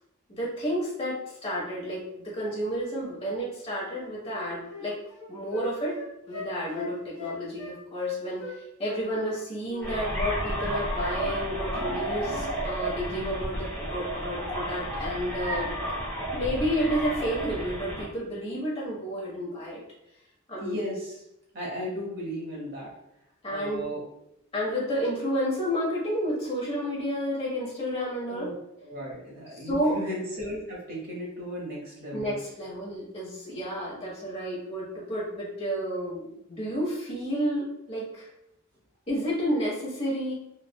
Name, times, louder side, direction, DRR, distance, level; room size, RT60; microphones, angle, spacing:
voice 1, 0.3-1.1 1.4-5.0 5.3-6.0 6.3-8.4 8.8-15.7 16.3-19.8 20.5-20.8 23.4-23.9 24.5-28.5 29.5-30.0 32.1-36.2 36.5-38.3 39.1-40.3, equal, 30° left, -6 dB, 1.1 m, -31 dB
Wind instrument woodwind instrument, 3.9-8.6 8.8-9.9 10.1-10.3, left 5 dB, 80° left, 0.9 m, -39 dB
sound 1, 9.8-18.1, right 1 dB, 10° left, 0.7 m, -32 dB
voice 2, 20.6-21.2 21.5-22.9 23.5-24.0 28.3-28.5 28.8-32.4, equal, 50° right, -4 dB, 1.0 m, -36 dB
3.2 x 2.3 x 2.2 m, 0.82 s
head